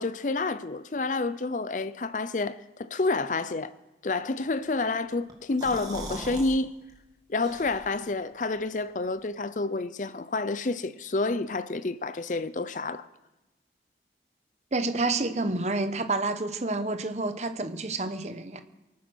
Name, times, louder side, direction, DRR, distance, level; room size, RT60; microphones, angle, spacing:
voice 1, 0.0-3.7 4.0-6.7 7.3-13.1, left 3 dB, 45° left, 0.5 m, -29 dB
sound 1, 5.3-6.5 6.9-7.0 7.4-8.1, right 1 dB, 25° right, 2.3 m, -39 dB
voice 2, 14.7-18.6, right 2 dB, 40° right, 1.0 m, -29 dB
24.0 x 9.5 x 6.3 m
head